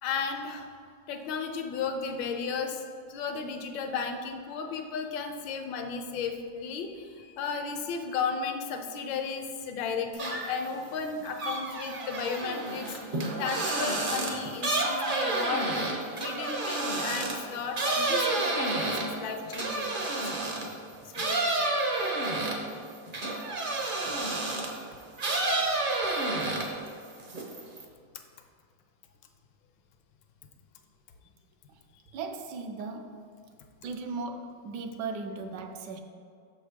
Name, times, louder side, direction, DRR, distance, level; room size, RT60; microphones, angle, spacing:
voice 1, 0.0-0.7 1.1-15.7 16.2-20.4 21.2-21.5, left 5 dB, 75° left, 5 dB, 1.4 m, -34 dB
sound 1, 10.1-10.7 11.0-20.7 21.1-24.8 25.2-26.9 27.2-27.8, right 2 dB, 45° right, 0.6 m, -30 dB
voice 2, 32.1-33.2 33.8-36.0, right 4 dB, 70° right, 5 dB, 1.1 m, -37 dB
6.4 x 5.4 x 5.0 m, 2.2 s
omnidirectional pair, 2.1 m